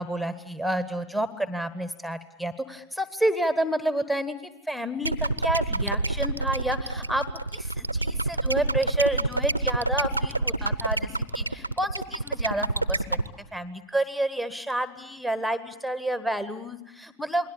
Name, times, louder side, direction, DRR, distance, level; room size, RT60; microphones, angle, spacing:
voice 1, 0.0-4.3 4.7-7.2 7.5-13.0 13.5-17.5, right 1 dB, ahead, 13 dB, 1.3 m, -29 dB
sound 1, 5.0-13.3, right 2 dB, 85° right, 0.9 m, -27 dB
29.0 x 21.5 x 6.9 m, 0.84 s
figure-of-eight pair, 90°, 0 cm